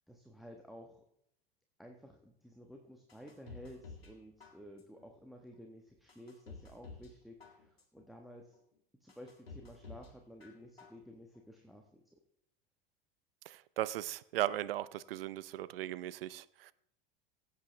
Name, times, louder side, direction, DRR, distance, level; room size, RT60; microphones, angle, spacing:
voice 1, 0.1-1.0 1.8-8.6 9.0-12.2, equal, ahead, 1.2 m, -53 dB
sound 1, 3.1-4.1 4.4-5.0 5.5-5.6 6.1-7.1 7.4-8.0 8.5-8.6 9.1-10.1 10.4-11.0 11.4-11.5, left 4 dB, 90° left, 1.8 m, -52 dB
voice 2, 13.5-16.7, right 14 dB, 75° right, 0.6 m, -37 dB
16.5 x 8.4 x 3.2 m
hypercardioid pair, 80°, 29 cm